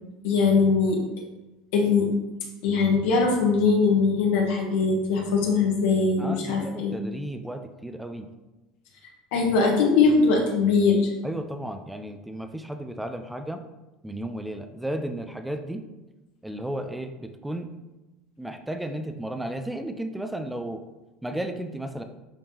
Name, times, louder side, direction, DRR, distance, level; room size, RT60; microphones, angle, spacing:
voice 1, 0.2-1.0 1.7-2.1 2.6-6.9 9.3-11.1, left 4 dB, 70° left, 0 dB, 1.5 m, -21 dB
voice 2, 6.2-8.3 11.2-13.6 14.0-15.8 16.4-17.7 18.4-20.8 21.2-22.0, right 1 dB, 5° right, 6 dB, 0.6 m, -33 dB
10.0 x 3.6 x 3.0 m, 1.0 s
hypercardioid pair, 75°, 0 cm